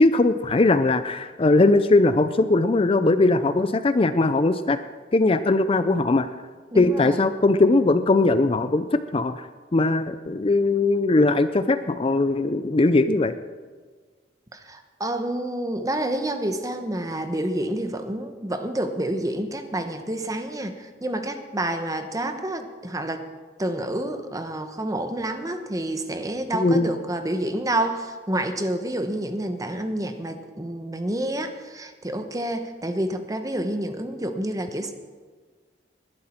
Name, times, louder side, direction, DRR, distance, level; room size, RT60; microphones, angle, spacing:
voice 1, 0.0-4.8 5.1-6.3 6.7-9.4 9.7-13.3 26.5-26.9, left 2 dB, 30° left, 12 dB, 0.5 m, -20 dB
voice 2, 6.7-7.2 14.5-23.3 23.6-34.9, right 1 dB, 20° right, 8 dB, 1.0 m, -28 dB
20.5 x 11.0 x 4.4 m, 1.5 s
head